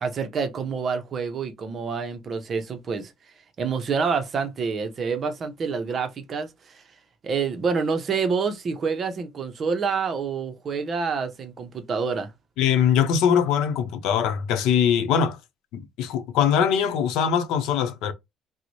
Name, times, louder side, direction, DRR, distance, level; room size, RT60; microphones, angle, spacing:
voice 1, 0.0-3.1 3.6-6.8 7.2-12.3, right 5 dB, 35° right, 0.6 m, -27 dB
voice 2, 12.6-15.4 15.7-18.1, left 8 dB, 85° left, 0.6 m, -22 dB
3.9 x 2.0 x 3.0 m
cardioid pair, 165°, 0 cm